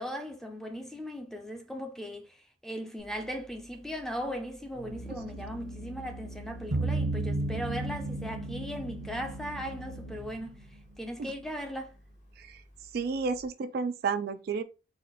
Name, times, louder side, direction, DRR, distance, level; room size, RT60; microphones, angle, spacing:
voice 1, 0.0-10.7 11.0-11.9, equal, 5° left, 0.5 m, -38 dB
Organ, 3.0-13.5, right 1 dB, 40° left, 1.0 m, -46 dB
sound 1, 6.7-10.4, right 2 dB, 80° right, 0.9 m, -33 dB
voice 2, 12.9-14.6, right 5 dB, 55° right, 0.3 m, -31 dB
4.1 x 2.4 x 3.9 m
head